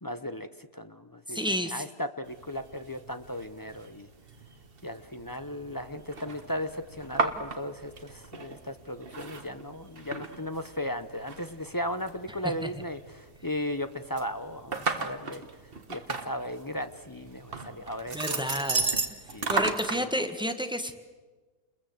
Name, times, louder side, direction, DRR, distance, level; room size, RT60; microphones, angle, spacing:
voice 1, 0.0-0.5 0.7-4.1 4.8-15.4 15.9-19.0 19.3-20.1, left 1 dB, 20° left, 10 dB, 0.5 m, -36 dB
voice 2, 1.3-1.8 12.6-12.7 18.1-18.9 19.5-20.9, equal, 5° right, 8 dB, 1.4 m, -30 dB
sound 1, 2.2-20.0, right 4 dB, 35° right, 1.6 m, -36 dB
29.5 x 21.5 x 7.9 m, 1.3 s
omnidirectional pair, 1.7 m